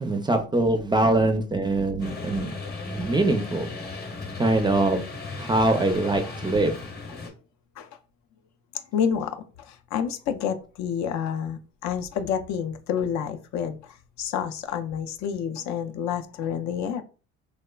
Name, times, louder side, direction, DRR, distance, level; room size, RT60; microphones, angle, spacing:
voice 1, 0.0-2.5 2.8-3.7 4.4-5.0 5.4-6.7, right 2 dB, 15° right, 6 dB, 0.4 m, -23 dB
sound 1, 2.0-7.3, left 3 dB, 30° left, 0.8 m, -36 dB
voice 2, 8.9-9.3 9.9-13.8 14.2-17.0, left 8 dB, 65° left, 7 dB, 0.5 m, -28 dB
3.1 x 2.0 x 2.2 m, 0.36 s
supercardioid pair, 75°, 31 cm